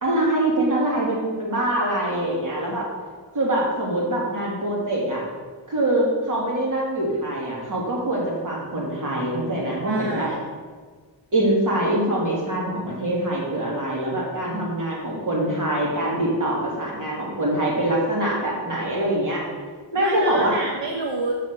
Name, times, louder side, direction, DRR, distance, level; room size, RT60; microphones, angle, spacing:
voice 1, 0.0-2.9 3.3-5.2 5.7-10.3 11.3-19.4 19.9-20.6, right 1 dB, 45° right, -4 dB, 2.8 m, -24 dB
voice 2, 9.8-10.5 20.0-21.3, right 3 dB, 70° right, 0 dB, 1.1 m, -29 dB
6.9 x 6.2 x 6.8 m, 1.5 s
wide cardioid pair, 130°, 44 cm